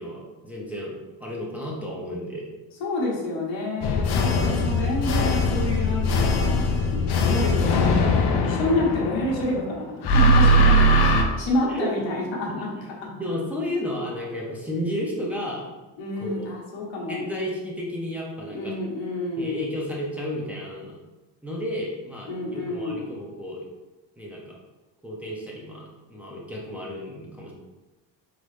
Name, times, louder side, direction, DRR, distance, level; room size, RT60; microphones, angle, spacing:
voice 1, 0.0-2.5 4.4-4.6 10.7-11.0 11.6-11.9 12.4-12.5 13.2-15.7 16.2-16.5 17.1-18.7 19.4-21.0 21.4-23.6 24.2-24.6 25.0-25.8 26.1-27.5, left 1 dB, 5° right, -4 dB, 1.0 m, -32 dB
voice 2, 2.8-8.1 8.4-10.7 11.0-11.1 11.4-12.7 16.0-17.3 18.5-19.6 22.3-23.1, left 2 dB, 90° left, -2 dB, 1.3 m, -28 dB
sound 1, 3.8-9.6 10.0-11.2, left 1 dB, 60° left, 0.7 m, -20 dB
3.8 x 3.8 x 3.3 m, 1.1 s
cardioid pair, 100°, 45 cm